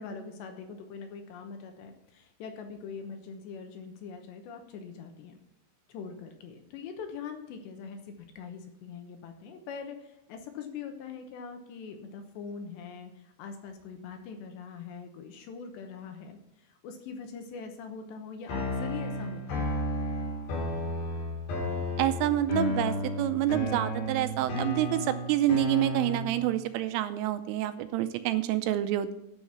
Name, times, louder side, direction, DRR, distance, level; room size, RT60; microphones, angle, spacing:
voice 1, 0.0-5.4 5.9-19.7, left 5 dB, 75° left, 5 dB, 2.8 m, -42 dB
sound 1, 18.5-26.5, left 1 dB, 55° left, 4.7 m, -32 dB
voice 2, 22.0-29.1, right 13 dB, 85° right, 11 dB, 3.1 m, -28 dB
11.5 x 6.5 x 5.8 m, 0.87 s
omnidirectional pair, 5.9 m